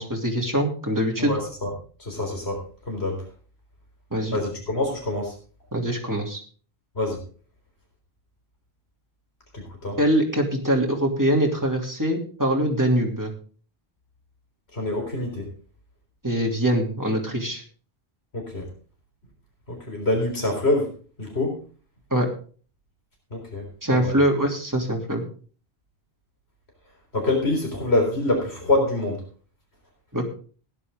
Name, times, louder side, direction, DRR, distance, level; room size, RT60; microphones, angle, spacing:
voice 1, 0.0-1.3 4.1-4.4 5.7-6.4 10.0-13.3 16.2-17.6 22.1-22.3 23.8-25.2 30.1-30.3, right 1 dB, 15° right, 0 dB, 2.9 m, -23 dB
voice 2, 1.2-1.7 2.0-3.2 4.3-5.3 7.0-7.2 9.5-10.0 14.7-15.5 18.3-18.7 19.7-20.9 21.2-21.6 23.3-23.6 23.9-24.2 27.1-29.2, left 2 dB, 85° left, 1 dB, 4.2 m, -25 dB
16.0 x 10.5 x 3.7 m, 0.40 s
omnidirectional pair, 1.1 m